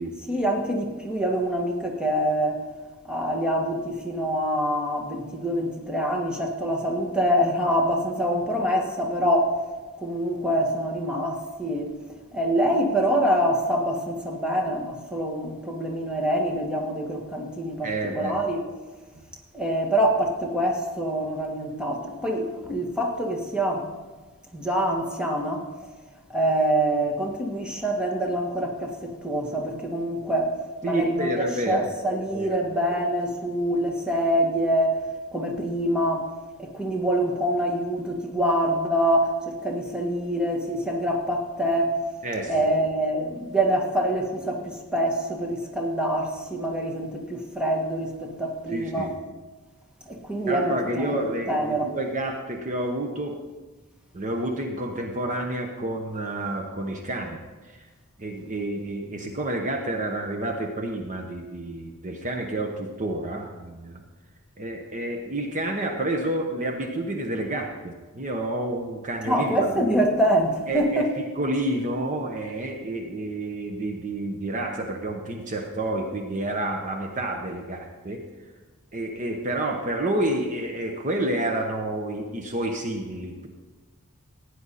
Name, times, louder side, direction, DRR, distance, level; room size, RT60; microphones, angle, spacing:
voice 1, 0.3-2.6 3.1-9.5 10.0-11.9 12.3-17.9 18.1-18.6 19.5-23.9 24.5-25.7 26.3-30.5 30.8-35.0 35.3-36.3 36.6-42.0 42.5-49.1 50.1-51.2 51.5-51.9 69.2-71.1, right 1 dB, 5° right, 0 dB, 1.6 m, -25 dB
voice 2, 17.8-18.3 19.1-19.2 30.8-31.8 32.3-32.6 42.2-42.8 48.7-49.1 50.5-53.3 54.1-57.4 57.7-57.8 58.2-64.0 64.6-69.8 70.7-78.2 78.9-83.5, right 1 dB, 35° right, 2 dB, 1.1 m, -29 dB
16.0 x 9.9 x 4.2 m, 1.3 s
head